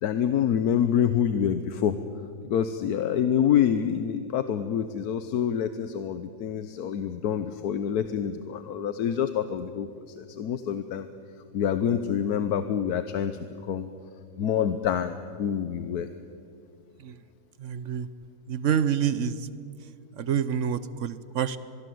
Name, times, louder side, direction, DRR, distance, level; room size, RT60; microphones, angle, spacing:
voice 1, 0.0-1.9 2.4-9.9 10.2-11.1 11.5-13.3 13.7-13.9 14.4-16.1, left 8 dB, 70° left, 10 dB, 1.3 m, -26 dB
voice 2, 17.6-18.1 18.5-19.4 20.2-21.6, right 8 dB, 55° right, 15 dB, 1.1 m, -27 dB
25.0 x 21.0 x 7.8 m, 2.4 s
omnidirectional pair, 1.7 m